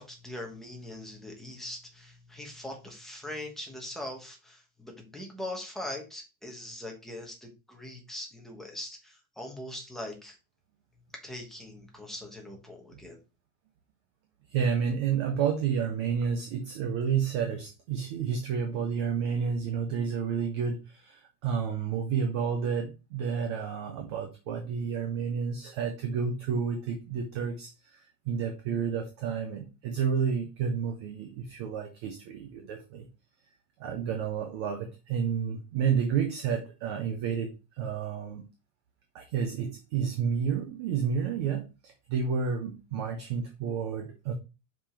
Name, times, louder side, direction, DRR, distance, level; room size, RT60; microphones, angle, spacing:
voice 1, 0.0-10.4 11.2-13.2, left 1 dB, ahead, 1.1 m, -41 dB
voice 2, 14.5-33.1 33.8-38.5 39.1-44.3, right 6 dB, 20° right, 0.3 m, -30 dB
5.4 x 5.1 x 4.3 m
supercardioid pair, 175°, 44 cm